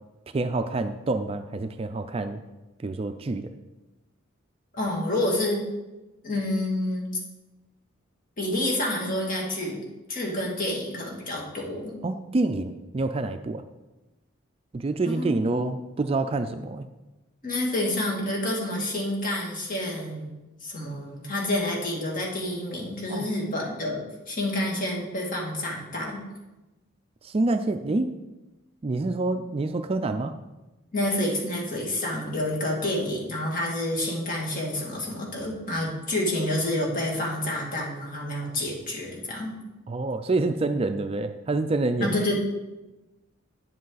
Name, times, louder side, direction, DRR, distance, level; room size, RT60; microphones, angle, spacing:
voice 1, 0.3-2.4 2.8-3.5 12.0-13.6 14.7-16.9 23.1-23.3 27.2-28.1 28.8-30.3 39.9-42.2, right 2 dB, 30° right, 8 dB, 0.3 m, -27 dB
voice 2, 4.7-5.6 6.2-7.1 8.4-9.8 10.1-12.0 15.0-15.7 17.4-20.3 20.6-26.2 30.9-39.6 42.0-42.4, left 1 dB, 40° left, -2 dB, 2.3 m, -28 dB
9.4 x 7.8 x 4.0 m, 1.1 s
head